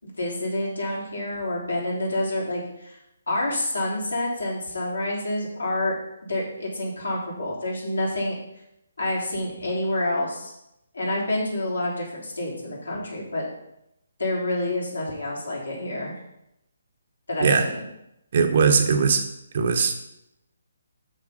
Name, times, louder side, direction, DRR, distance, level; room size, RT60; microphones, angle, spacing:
voice 1, 0.0-3.0 3.3-5.9 6.3-8.4 9.0-10.5 10.9-13.4 14.2-16.2 17.3-17.8, left 1 dB, 80° left, -3 dB, 3.6 m, -28 dB
voice 2, 18.3-19.2 19.5-19.9, right 5 dB, 50° right, 6 dB, 1.2 m, -20 dB
6.9 x 6.5 x 5.3 m, 0.85 s
figure-of-eight pair, 145°, 0 cm